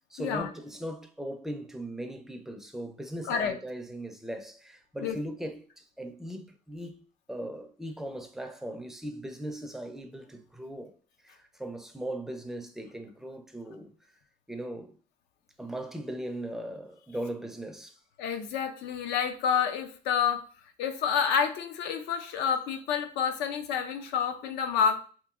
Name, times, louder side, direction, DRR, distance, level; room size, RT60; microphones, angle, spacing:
voice 1, 0.1-7.0 7.3-10.9 11.2-13.9 14.5-15.0 15.6-18.0, right 1 dB, ahead, 0.4 m, -39 dB
voice 2, 18.2-20.4 20.8-25.0, left 7 dB, 90° left, 0.5 m, -28 dB
2.9 x 2.6 x 2.4 m
cardioid pair, 110°, 17 cm